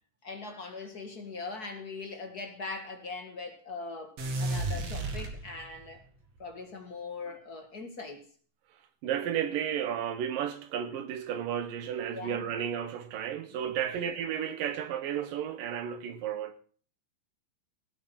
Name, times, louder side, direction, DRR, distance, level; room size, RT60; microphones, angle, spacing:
voice 1, 0.2-6.0 6.4-8.3 12.1-12.5 13.5-13.6 13.9-14.1, left 3 dB, 35° left, 1.7 m, -41 dB
sound 1, 4.2-6.0, right 2 dB, 50° right, 3.1 m, -33 dB
voice 2, 9.0-16.6, right 9 dB, 80° right, 3.1 m, -33 dB
17.0 x 8.5 x 6.0 m
omnidirectional pair, 3.9 m